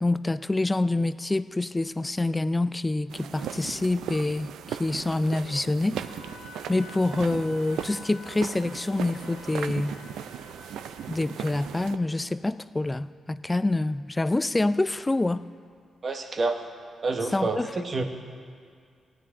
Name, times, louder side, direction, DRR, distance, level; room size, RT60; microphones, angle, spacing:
voice 1, 0.0-6.0 6.7-10.0 11.1-15.4 17.3-17.7, left 2 dB, 20° left, 15 dB, 0.4 m, -26 dB
sound 1, 3.1-12.0, right 9 dB, 85° right, 0.4 m, -38 dB
Wind instrument woodwind instrument, 6.0-11.8, left 4 dB, 85° left, 0.9 m, -49 dB
voice 2, 16.0-16.6 17.0-18.0, right 3 dB, 50° right, 5 dB, 1.2 m, -28 dB
16.5 x 9.6 x 3.8 m, 2.2 s
supercardioid pair, 50°, 0 cm